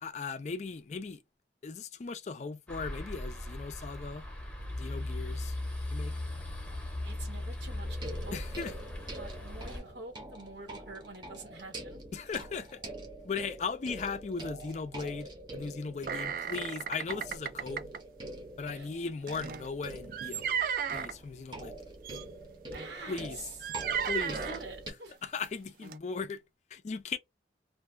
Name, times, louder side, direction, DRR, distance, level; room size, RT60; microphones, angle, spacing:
voice 1, 0.0-1.2 1.6-4.3 4.8-5.6 5.9-6.1 8.3-8.7 12.1-12.8 13.2-17.8 18.6-20.5 20.9-21.7 23.1-23.4 24.0-24.4 25.2-26.4 26.7-27.2, left 4 dB, 40° left, 0.4 m, -37 dB
sound 1, 2.7-9.8, left 1 dB, 10° left, 0.7 m, -38 dB
voice 2, 7.0-8.4 8.9-12.0 18.7-18.9 22.7-23.6 24.3-25.2, right 3 dB, 80° right, 1.4 m, -46 dB
sound 2, 7.8-24.9, right 1 dB, 25° right, 0.7 m, -45 dB
sound 3, 16.1-18.0 19.3-21.1 22.0-22.2 22.7-22.9 23.6-24.6 25.4-25.5 25.8-26.0, right 7 dB, 50° right, 0.3 m, -34 dB
2.5 x 2.2 x 3.1 m
head